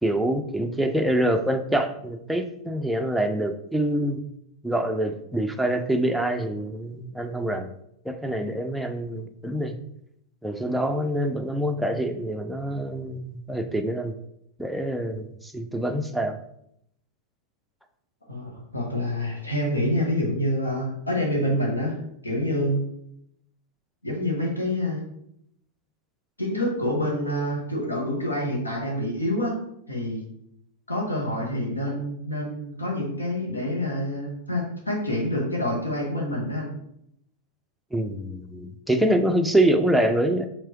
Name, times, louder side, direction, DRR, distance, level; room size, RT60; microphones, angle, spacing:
voice 1, 0.0-4.2 4.6-7.7 8.0-9.8 10.4-14.1 14.6-16.4 37.9-40.5, right 1 dB, ahead, 5 dB, 0.4 m, -25 dB
voice 2, 18.3-22.0 22.2-22.8 24.0-25.0 26.4-29.6 29.9-30.2 30.9-36.7, left 1 dB, 80° left, -1 dB, 1.2 m, -27 dB
4.6 x 3.7 x 3.0 m, 0.76 s
figure-of-eight pair, 90°, 0 cm